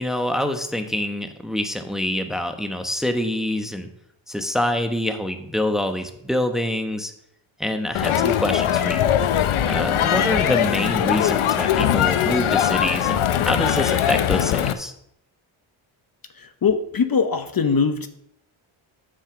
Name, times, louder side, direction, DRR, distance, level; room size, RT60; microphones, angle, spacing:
voice 1, 0.0-3.9 4.3-7.1 7.6-9.1 9.6-14.9, left 1 dB, ahead, 6 dB, 1.0 m, -26 dB
Crowd, 7.9-14.7, left 10 dB, 75° left, 0.8 m, -21 dB
voice 2, 16.6-18.1, left 5 dB, 45° left, 9 dB, 0.9 m, -21 dB
7.6 x 5.6 x 7.0 m, 0.72 s
cardioid pair, 70°, 50 cm